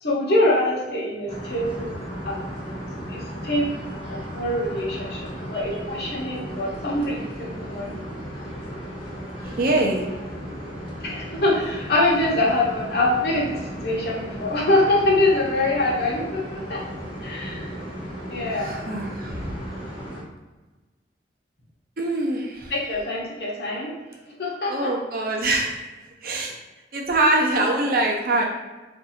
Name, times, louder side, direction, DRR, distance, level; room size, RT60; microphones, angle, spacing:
voice 1, 0.0-2.4 3.1-7.9 11.0-16.8 17.2-17.7 18.3-18.8 22.7-23.9 24.4-24.9, left 1 dB, 60° left, -3 dB, 0.9 m, -24 dB
sound 1, 1.3-20.2, equal, 30° left, 0.8 m, -35 dB
voice 2, 9.4-10.0 18.6-19.6 22.0-22.7 24.7-25.8 26.2-26.6 26.9-28.4, right 2 dB, 50° right, 0 dB, 0.6 m, -23 dB
2.6 x 2.4 x 4.1 m, 1.2 s
head